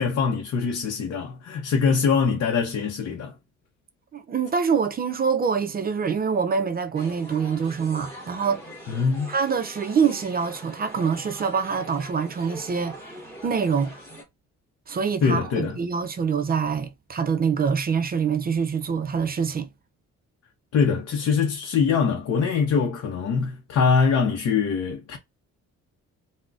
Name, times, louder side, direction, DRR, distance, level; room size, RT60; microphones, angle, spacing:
voice 1, 0.0-3.3 8.9-9.3 15.2-15.8 20.7-25.2, left 5 dB, 55° left, 0.6 m, -23 dB
voice 2, 4.1-8.6 9.3-13.9 14.9-19.7, right 6 dB, 30° right, 0.4 m, -25 dB
sound 1, 6.9-14.2, equal, 10° left, 2.1 m, -42 dB
3.7 x 2.1 x 2.4 m
cardioid pair, 90°, 30 cm